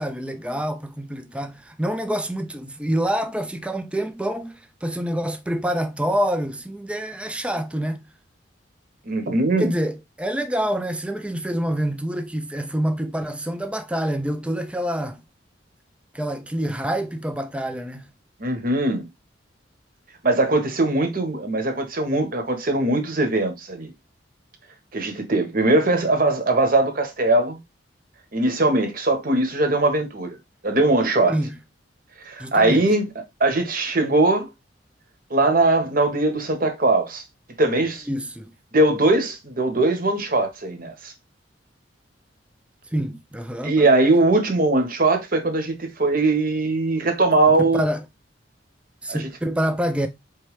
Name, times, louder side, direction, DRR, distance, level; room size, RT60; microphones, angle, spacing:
voice 1, 0.0-8.0 9.6-15.2 16.1-18.1 31.3-31.6 32.4-32.9 37.8-38.5 42.9-43.9 47.5-48.0 49.0-50.1, equal, 5° right, 0.4 m, -27 dB
voice 2, 9.1-9.7 18.4-19.1 20.2-23.9 24.9-27.6 28.3-30.4 30.6-31.4 32.2-33.0 33.4-34.5 35.3-37.2 37.6-38.1 38.7-41.1 43.6-47.9 49.1-49.3, right 2 dB, 50° right, 1.1 m, -20 dB
4.4 x 3.1 x 3.1 m
head